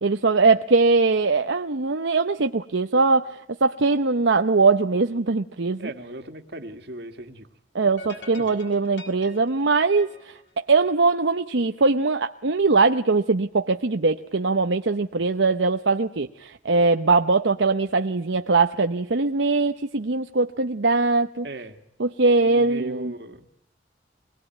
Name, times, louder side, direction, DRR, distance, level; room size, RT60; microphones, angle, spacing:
voice 1, 0.0-5.9 7.7-21.5 22.0-23.1, right 3 dB, 80° right, 7 dB, 0.9 m, -21 dB
voice 2, 5.8-7.5 21.4-21.8 22.4-23.4, right 1 dB, 60° right, 6 dB, 2.2 m, -38 dB
sound 1, 8.0-11.4, left 3 dB, 65° left, 4.8 m, -45 dB
24.0 x 21.0 x 9.2 m, 0.76 s
head